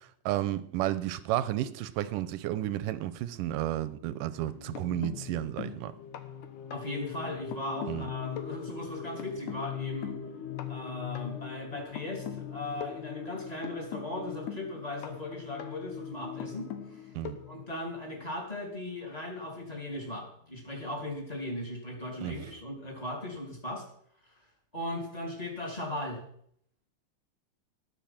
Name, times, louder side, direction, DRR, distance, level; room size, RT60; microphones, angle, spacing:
voice 1, 0.0-5.9 7.9-8.1 17.1-17.4 22.2-22.3, right 13 dB, 80° right, 2.3 m, -32 dB
sound 1, 4.4-18.3 19.6-19.7 20.0-20.2, left 8 dB, 70° left, 2.4 m, -40 dB
voice 2, 6.7-10.2 10.7-17.1 17.5-23.8 24.7-26.2, left 1 dB, 10° left, 2.7 m, -38 dB
19.0 x 7.1 x 5.9 m
omnidirectional pair, 3.9 m